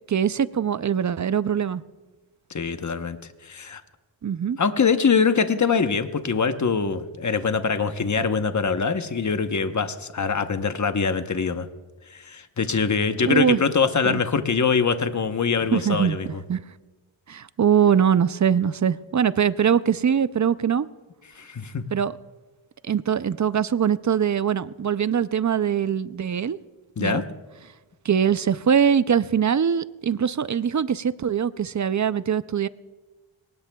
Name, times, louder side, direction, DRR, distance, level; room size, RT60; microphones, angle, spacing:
voice 1, 0.1-1.8 4.2-4.6 13.3-13.6 14.0-14.2 15.7-16.6 17.3-20.9 21.9-22.2 22.9-26.6 27.0-27.2 28.0-32.7, right 8 dB, 40° right, 0.4 m, -22 dB
voice 2, 2.5-3.2 3.4-3.8 4.6-11.7 12.1-16.4 21.4-21.8 27.0-27.3, left 5 dB, 35° left, 0.9 m, -23 dB
23.0 x 19.0 x 2.3 m
wide cardioid pair, 70°, 50 cm